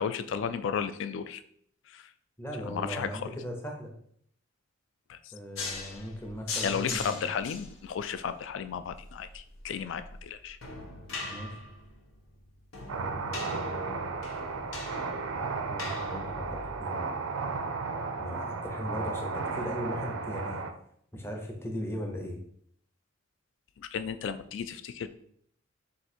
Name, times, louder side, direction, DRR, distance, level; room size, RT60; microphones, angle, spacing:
voice 1, 0.0-1.4 1.9-2.1 2.7-3.3 5.1-5.3 6.6-10.6 23.8-25.1, left 7 dB, 60° left, 11 dB, 0.3 m, -34 dB
voice 2, 2.4-3.9 5.3-7.2 11.3-11.6 12.9-14.0 15.7-17.1 18.2-20.6 21.1-22.4, equal, 10° left, 1 dB, 0.6 m, -38 dB
sound 1, 5.6-16.8, left 3 dB, 85° left, 0.8 m, -41 dB
sound 2, 12.9-20.7, right 4 dB, 75° right, 0.5 m, -34 dB
3.7 x 2.6 x 4.3 m, 0.66 s
head